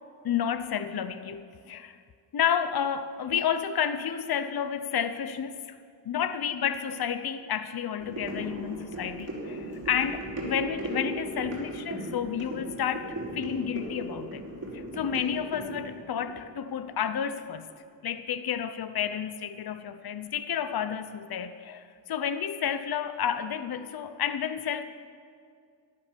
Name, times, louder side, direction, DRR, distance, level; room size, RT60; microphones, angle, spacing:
voice 1, 0.2-2.0 2.3-5.8 6.0-14.4 14.7-17.7 18.0-24.8, left 8 dB, 55° left, 11 dB, 0.8 m, -31 dB
sound 1, 8.0-17.3 17.7-17.8, right 1 dB, 35° right, 4.7 m, -37 dB
13.5 x 12.5 x 6.9 m, 2.2 s
wide cardioid pair, 95°, 45 cm